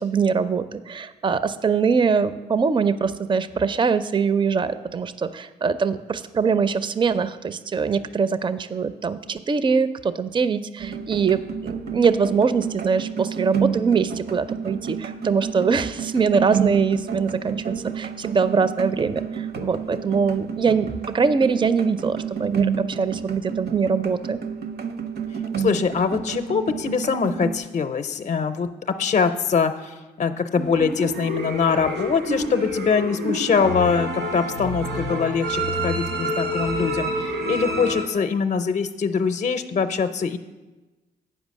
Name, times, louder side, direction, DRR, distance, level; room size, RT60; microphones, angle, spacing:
voice 1, 0.0-24.4, right 5 dB, 25° right, 14 dB, 0.5 m, -23 dB
sound 1, 10.8-27.6, right 7 dB, 55° right, 0.7 m, -30 dB
voice 2, 25.6-40.4, left 5 dB, 40° left, 8 dB, 0.5 m, -23 dB
sound 2, 30.6-38.0, equal, 80° right, 1.6 m, -28 dB
8.9 x 5.1 x 6.2 m, 1.2 s
supercardioid pair, 50°, 19 cm